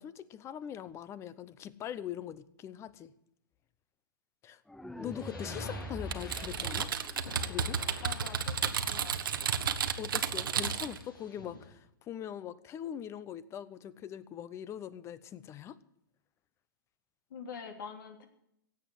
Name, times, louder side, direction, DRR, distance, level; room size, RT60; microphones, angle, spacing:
voice 1, 0.0-3.1 4.4-4.6 5.0-6.9 7.4-7.8 10.0-15.8, left 10 dB, 25° left, 18 dB, 0.8 m, -42 dB
sound 1, 4.7-7.7, left 1 dB, 5° left, 0.5 m, -43 dB
sound 2, 5.0-11.7, left 2 dB, 90° left, 6.3 m, -49 dB
Typing, 6.1-11.0, right 7 dB, 80° right, 1.3 m, -32 dB
voice 2, 8.0-9.6 10.6-10.8 17.3-18.3, left 6 dB, 70° left, 5 dB, 3.3 m, -46 dB
16.5 x 8.3 x 8.0 m, 0.77 s
hypercardioid pair, 130°, 11 cm